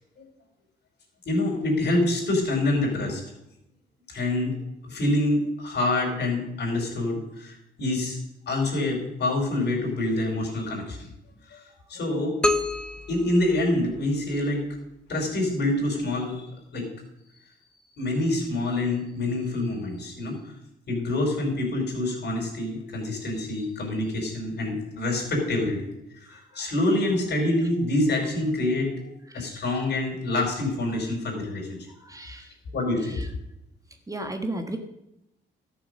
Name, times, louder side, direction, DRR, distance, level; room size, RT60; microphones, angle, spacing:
voice 1, 1.2-3.2 4.1-4.5 4.9-8.2 8.5-11.1 11.5-11.6 11.9-12.3 13.1-14.6 15.1-16.8 18.0-20.4 20.9-25.8 26.1-29.1 29.3-31.8 32.7-33.2, left 2 dB, 60° left, 0 dB, 4.7 m, -26 dB
sound 1, 12.4-14.3, left 2 dB, 5° left, 0.7 m, -28 dB
voice 2, 32.0-32.5 34.1-34.8, right 1 dB, 15° right, 5 dB, 1.4 m, -33 dB
13.0 x 7.0 x 6.5 m, 0.87 s
cardioid pair, 90°, 20 cm